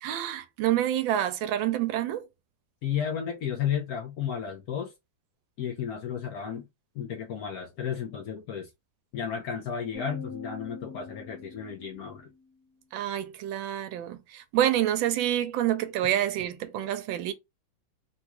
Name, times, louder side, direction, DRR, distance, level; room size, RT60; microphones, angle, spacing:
voice 1, 0.0-2.3 12.9-17.3, right 12 dB, 85° right, 1.3 m, -27 dB
voice 2, 2.8-4.9 5.6-6.7 6.9-8.7 9.1-12.3, left 8 dB, 70° left, 0.9 m, -33 dB
sound 1, 9.9-12.5, left 4 dB, 50° left, 1.5 m, -44 dB
3.7 x 2.3 x 2.9 m
omnidirectional pair, 2.1 m